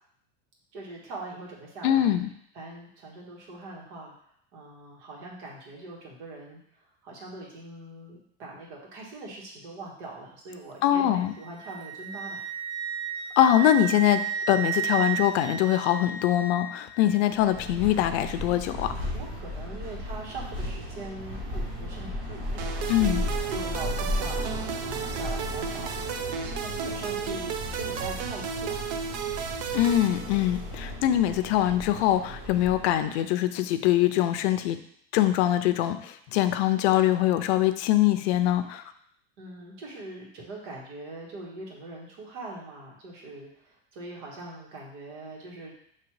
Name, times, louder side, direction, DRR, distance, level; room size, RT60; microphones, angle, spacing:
voice 1, 0.7-2.1 2.5-4.1 4.5-12.4 19.1-28.8 39.4-45.7, right 2 dB, 85° right, -2 dB, 1.6 m, -42 dB
voice 2, 1.8-2.3 10.8-11.3 13.4-18.9 22.9-23.2 29.7-34.8 35.1-38.8, left 12 dB, 70° left, 10 dB, 0.5 m, -23 dB
Wind instrument woodwind instrument, 11.2-17.1, right 7 dB, 20° left, 0.4 m, -33 dB
sound 1, 17.3-33.1, equal, 30° right, 0.9 m, -35 dB
sound 2, 22.6-30.8, right 7 dB, 60° right, 0.5 m, -34 dB
5.9 x 2.9 x 3.1 m, 0.67 s
supercardioid pair, 170°, 34 cm